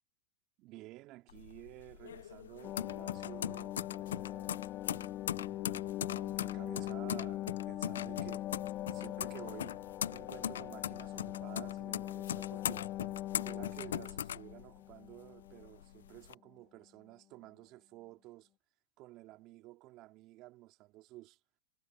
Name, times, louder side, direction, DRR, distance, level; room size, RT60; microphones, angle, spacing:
voice 1, 0.6-4.6 5.4-8.5 8.9-9.8 10.1-12.8 13.2-18.5 19.0-21.4, right 18 dB, 45° right, 2.7 m, -53 dB
sound 1, 1.3-15.1 15.5-16.3, left 9 dB, 85° left, 0.6 m, -40 dB
sound 2, 2.6-15.7 16.0-16.1, left 14 dB, 40° left, 0.9 m, -41 dB
hypercardioid pair, 115°, 0 cm